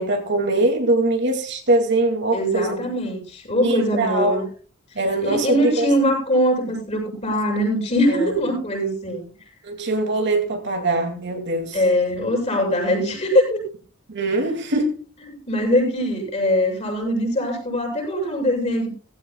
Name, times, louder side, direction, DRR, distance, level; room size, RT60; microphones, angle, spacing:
voice 1, 0.0-2.8 3.6-4.4 4.9-5.9 8.1-8.3 9.6-11.8 14.1-15.0, right 2 dB, 55° right, 2.5 m, -22 dB
voice 2, 2.3-4.5 5.2-9.3 11.7-13.6 15.3-18.9, equal, 30° left, 7.6 m, -22 dB
17.5 x 16.0 x 2.3 m
head